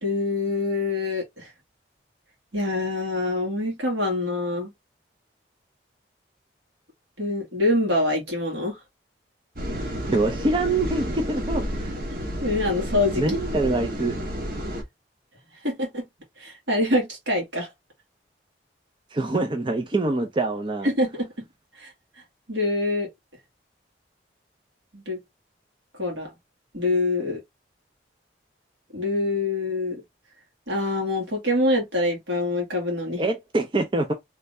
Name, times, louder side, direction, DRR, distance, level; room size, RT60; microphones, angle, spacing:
voice 1, 0.0-1.4 2.5-4.7 7.2-8.8 12.1-13.2 15.6-16.0 16.4-17.7 20.8-21.5 21.8-21.9 22.5-23.1 24.9-25.2 26.0-26.3 26.7-27.4 28.9-30.0 30.7-33.2, left 2 dB, 80° right, 1.9 m, -25 dB
sound 1, 9.6-14.8, equal, 50° right, 1.0 m, -31 dB
voice 2, 10.1-11.9 13.2-14.2 19.1-20.9 33.2-34.1, right 2 dB, 25° right, 0.4 m, -25 dB
3.2 x 2.6 x 3.2 m
head